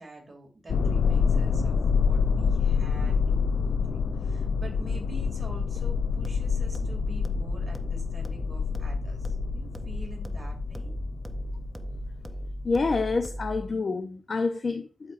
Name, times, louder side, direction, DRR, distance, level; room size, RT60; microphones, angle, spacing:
voice 1, 0.0-10.9, right 1 dB, 35° right, 2.7 m, -46 dB
sound 1, 0.7-13.2, left 6 dB, 90° left, 0.4 m, -27 dB
sound 2, 5.8-13.8, equal, 5° right, 0.7 m, -37 dB
voice 2, 12.6-15.1, left 4 dB, 50° left, 0.7 m, -28 dB
12.5 x 4.5 x 2.5 m
wide cardioid pair, 100°, 0 cm